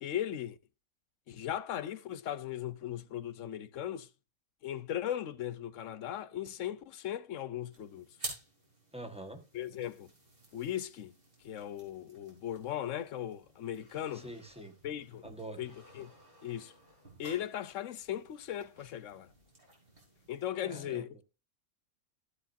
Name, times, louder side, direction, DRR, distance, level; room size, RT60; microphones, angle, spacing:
voice 1, 0.0-0.6 1.3-4.1 4.6-8.1 9.5-10.1 10.5-11.1 11.4-14.3 14.8-15.2 15.6-16.1 16.4-16.7 17.2-19.3 20.3-21.2, left 11 dB, 80° left, 1.1 m, -38 dB
sound 1, 7.7-20.5, right 1 dB, 45° right, 4.2 m, -52 dB
voice 2, 8.9-9.4 14.1-14.7 15.2-15.6 20.6-21.1, right 1 dB, 5° right, 1.3 m, -45 dB
13.0 x 8.2 x 2.7 m
omnidirectional pair, 1.3 m